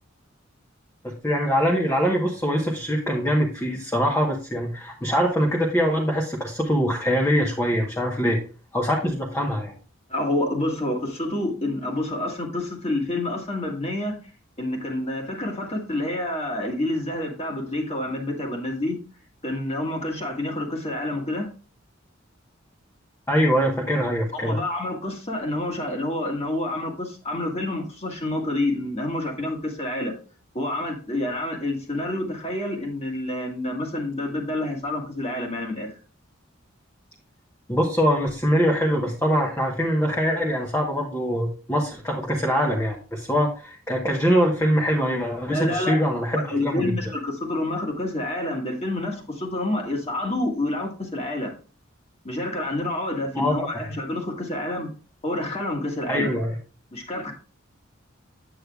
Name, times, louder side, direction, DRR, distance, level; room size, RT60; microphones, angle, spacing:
voice 1, 1.0-8.4 8.7-9.7 23.3-24.6 37.7-47.1 53.3-53.5 56.1-56.6, equal, 15° left, -1 dB, 1.1 m, -23 dB
voice 2, 10.1-14.2 14.6-19.0 19.4-21.5 24.3-30.1 30.5-36.0 45.5-46.0 46.3-51.5 52.2-54.9 55.2-56.4 56.9-57.3, left 1 dB, 30° left, 2 dB, 1.7 m, -28 dB
8.5 x 8.1 x 2.3 m, 0.37 s
head